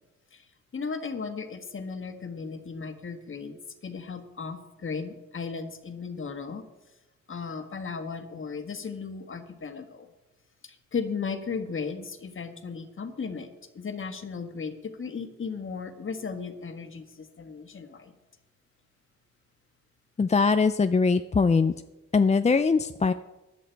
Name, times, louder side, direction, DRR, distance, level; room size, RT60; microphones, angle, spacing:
voice 1, 0.7-6.6 7.3-10.1 10.6-18.1, left 5 dB, 40° left, 7 dB, 1.6 m, -36 dB
voice 2, 20.2-21.7 22.1-23.1, left 4 dB, 20° left, 10 dB, 0.5 m, -22 dB
15.5 x 10.5 x 4.6 m, 1.0 s
cardioid pair, 90°, 30 cm